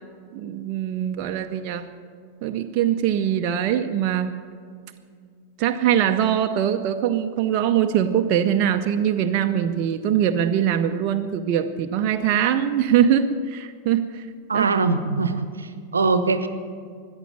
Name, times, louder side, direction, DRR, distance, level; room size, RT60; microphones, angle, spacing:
voice 1, 0.3-1.9 2.4-4.3 5.6-14.3 14.5-14.7, right 9 dB, 40° right, 5 dB, 0.7 m, -22 dB
voice 2, 14.5-16.5, right 4 dB, 75° right, 11 dB, 0.9 m, -22 dB
14.5 x 9.8 x 9.1 m, 2.1 s
figure-of-eight pair, 90°, 0 cm